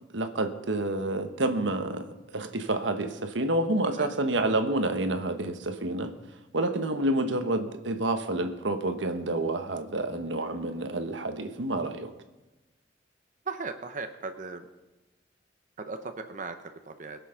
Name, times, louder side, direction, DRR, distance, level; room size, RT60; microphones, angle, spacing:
voice 1, 0.1-6.1 6.5-12.1, right 2 dB, 85° right, 8 dB, 1.2 m, -29 dB
voice 2, 13.5-14.7 15.8-17.2, right 4 dB, 45° right, 7 dB, 0.8 m, -37 dB
21.5 x 7.4 x 5.7 m, 1.1 s
head